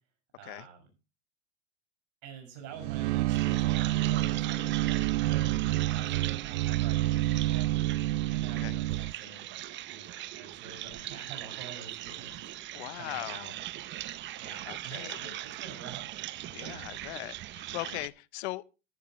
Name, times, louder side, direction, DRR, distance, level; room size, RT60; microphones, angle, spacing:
voice 1, 0.3-0.9 2.2-5.7 5.9-7.7 8.3-12.3 13.0-13.6 14.4-16.1, right 7 dB, 50° right, 6.6 m, -47 dB
sound 1, 2.8-9.1, right 16 dB, 70° right, 0.5 m, -28 dB
sound 2, 3.3-18.1, right 14 dB, 30° right, 0.7 m, -40 dB
voice 2, 12.7-13.5 14.7-15.2 16.5-18.6, left 20 dB, 65° left, 0.7 m, -39 dB
13.5 x 12.5 x 3.1 m
supercardioid pair, 120°, 36 cm